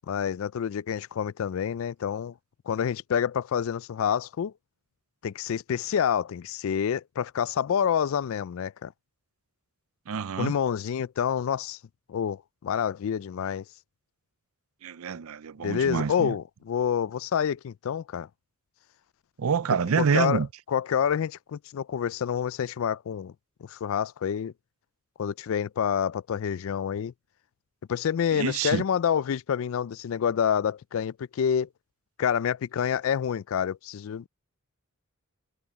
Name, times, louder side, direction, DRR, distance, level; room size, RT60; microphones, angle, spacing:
voice 1, 0.1-2.3 2.7-4.5 5.2-8.9 10.4-11.8 12.1-13.6 15.6-18.3 20.0-23.3 23.6-24.5 25.2-27.1 27.9-31.7 32.2-34.3, left 8 dB, 65° left, 0.3 m, -28 dB
voice 2, 10.1-10.5 14.8-16.3 19.4-20.5 28.3-28.8, right 6 dB, 75° right, 0.5 m, -27 dB
head